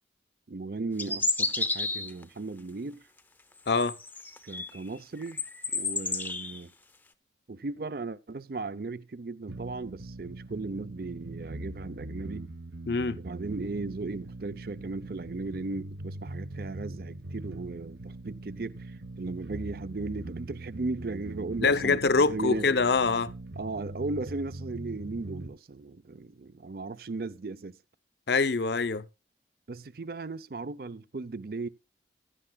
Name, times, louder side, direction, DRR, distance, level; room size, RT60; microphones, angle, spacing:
voice 1, 0.5-3.1 4.4-5.4 5.7-6.7 7.5-12.5 13.2-22.7 23.6-27.8 29.7-31.7, right 3 dB, 55° right, 0.6 m, -36 dB
sound 1, 1.0-2.2 3.7-4.8 5.2-6.6, left 3 dB, 10° left, 0.7 m, -31 dB
sound 2, 9.5-25.5, right 2 dB, 70° right, 1.1 m, -41 dB
voice 2, 12.9-13.2 21.6-23.3 28.3-29.0, left 4 dB, 65° left, 0.7 m, -24 dB
15.5 x 11.5 x 2.3 m
head